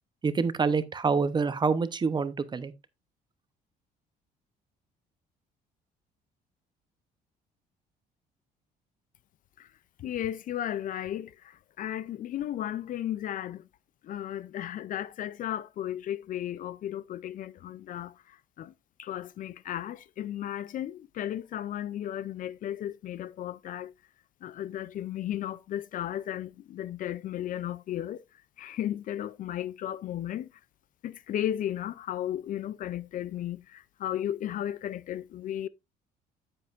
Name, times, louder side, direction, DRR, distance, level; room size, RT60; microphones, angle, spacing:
voice 1, 0.2-2.7, right 5 dB, 25° right, 0.8 m, -26 dB
voice 2, 10.0-13.6 14.0-18.7 19.0-23.9 24.4-28.2 28.6-30.5 31.0-35.7, left 11 dB, 50° left, 0.4 m, -35 dB
9.5 x 7.6 x 2.5 m
cardioid pair, 110°, 17 cm